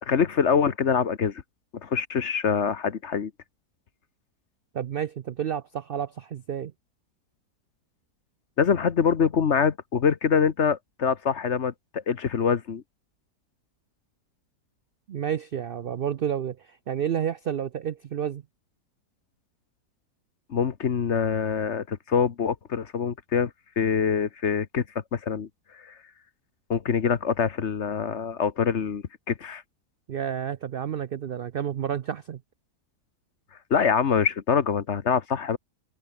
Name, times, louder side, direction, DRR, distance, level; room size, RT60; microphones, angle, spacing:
voice 1, 0.0-1.4 1.8-3.3 8.6-12.8 20.5-23.5 23.8-24.8 25.1-25.5 25.7-25.9 26.7-29.6 33.7-35.6, left 6 dB, 50° left, 1.3 m, -24 dB
voice 2, 4.7-6.7 15.1-18.4 30.1-32.4, right 9 dB, 80° right, 0.5 m, -30 dB
omnidirectional pair, 1.7 m